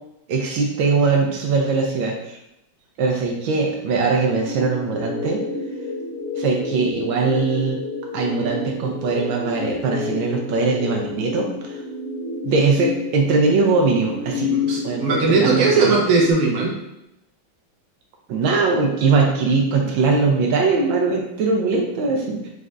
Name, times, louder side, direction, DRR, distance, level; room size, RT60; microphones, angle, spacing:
voice 1, 0.3-2.4 3.0-5.4 6.4-7.8 8.1-11.8 12.4-14.5 14.8-16.0 18.3-22.5, right 4 dB, 80° right, 1 dB, 1.4 m, -21 dB
sound 1, 4.4-16.3, left 3 dB, 60° left, 1.1 m, -29 dB
voice 2, 14.5-16.7, right 3 dB, 55° right, -2 dB, 1.1 m, -18 dB
5.2 x 2.4 x 3.3 m, 0.85 s
omnidirectional pair, 2.2 m